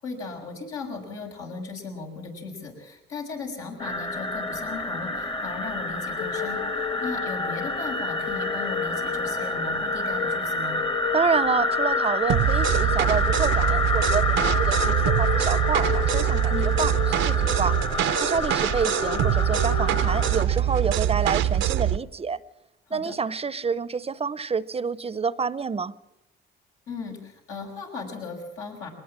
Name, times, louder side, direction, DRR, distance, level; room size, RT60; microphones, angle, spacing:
voice 1, 0.0-10.8 16.5-16.7 22.9-23.2 26.9-28.9, left 4 dB, 85° left, 0 dB, 6.5 m, -37 dB
sound 1, 3.8-20.4, left 2 dB, 25° left, 1.3 m, -28 dB
sound 2, 6.2-21.3, left 10 dB, 65° left, 1.4 m, -35 dB
voice 2, 11.1-17.8 18.2-22.4 22.9-25.9, right 5 dB, 30° right, 18 dB, 0.7 m, -28 dB
sound 3, 12.3-22.0, right 12 dB, 85° right, 0.8 m, -23 dB
22.0 x 19.5 x 7.4 m, 0.87 s
cardioid pair, 90°, 20 cm